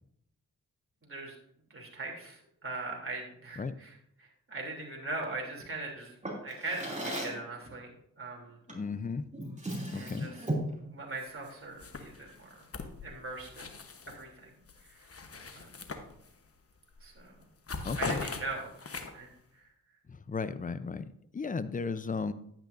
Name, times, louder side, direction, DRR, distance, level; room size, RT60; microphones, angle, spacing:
voice 1, 1.0-1.3 1.7-6.1 6.4-7.9 8.2-8.6 9.9-10.3 10.9-12.6 13.0-13.7 14.1-14.5 14.9-15.1 15.5-15.8 17.0-17.4 18.0-19.7, right 3 dB, 40° right, -1 dB, 3.1 m, -41 dB
Drawer open or close, 6.2-7.5 8.7-8.9 9.3-10.8, right 1 dB, 20° right, 2.8 m, -36 dB
voice 2, 8.7-9.3 9.9-10.3 17.8-18.2 20.1-21.1 21.3-22.3, left 4 dB, 25° left, 14 dB, 0.6 m, -34 dB
sound 1, 11.2-11.5 11.8-14.2 14.6-16.5 16.9-17.1 17.4-19.4, left 4 dB, 40° left, 1.1 m, -41 dB
10.0 x 9.0 x 2.6 m, 0.73 s
cardioid pair, 50°, 34 cm